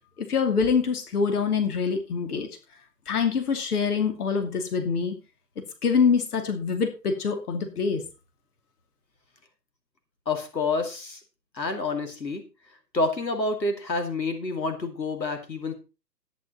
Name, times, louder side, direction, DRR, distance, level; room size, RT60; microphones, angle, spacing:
voice 1, 0.3-2.5 3.1-5.1 5.8-8.0, left 5 dB, 60° left, 6 dB, 2.7 m, -25 dB
voice 2, 10.3-11.2 11.5-12.4 12.9-15.7, left 3 dB, 90° left, 6 dB, 2.7 m, -28 dB
12.0 x 9.9 x 4.2 m, 0.31 s
figure-of-eight pair, 130°, 50 cm